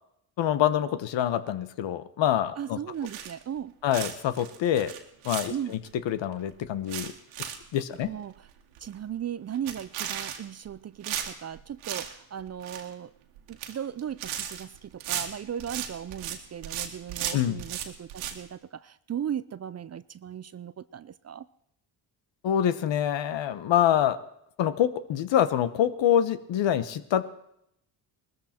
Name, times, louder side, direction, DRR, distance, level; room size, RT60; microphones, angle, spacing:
voice 1, 0.4-2.8 3.8-4.9 5.2-5.8 6.0-7.1 7.7-8.1 17.3-17.6 22.4-24.2 24.6-27.2, left 10 dB, 60° left, 13 dB, 1.2 m, -25 dB
voice 2, 2.6-3.7 5.5-5.7 8.0-8.5 8.8-13.1 13.5-21.5, right 9 dB, 30° right, 17 dB, 0.5 m, -37 dB
sound 1, 3.0-3.6 3.9-5.9 6.3-6.4 6.7-7.6 7.9-8.1 8.5-8.6 8.8-9.1 9.5-10.7 11.0-12.1 12.4-12.9 13.4-13.7 14.0-16.4 16.6-18.4, right 10 dB, 80° right, 1.9 m, -35 dB
20.0 x 14.0 x 4.4 m, 0.76 s
supercardioid pair, 65°, 49 cm